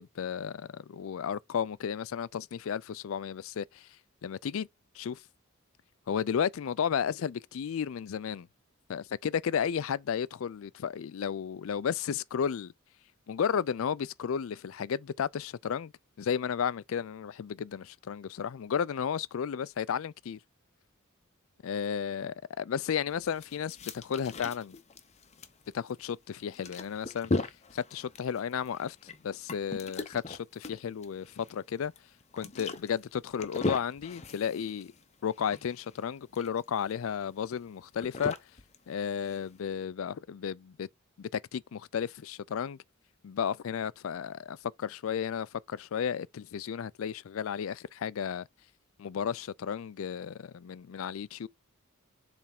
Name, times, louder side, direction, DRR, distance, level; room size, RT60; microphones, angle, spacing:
voice 1, 0.0-3.9 4.2-4.7 4.9-5.2 6.1-8.5 8.9-12.7 13.3-15.9 16.2-20.4 21.6-24.7 25.7-27.3 27.7-29.0 29.2-31.9 32.3-34.9 35.2-38.3 38.9-40.9 41.2-42.8 43.2-48.5 49.0-51.5, left 7 dB, 70° left, 0.4 m, -33 dB
sound 1, 23.1-39.6, left 2 dB, 30° left, 0.8 m, -39 dB
7.4 x 3.5 x 5.9 m
head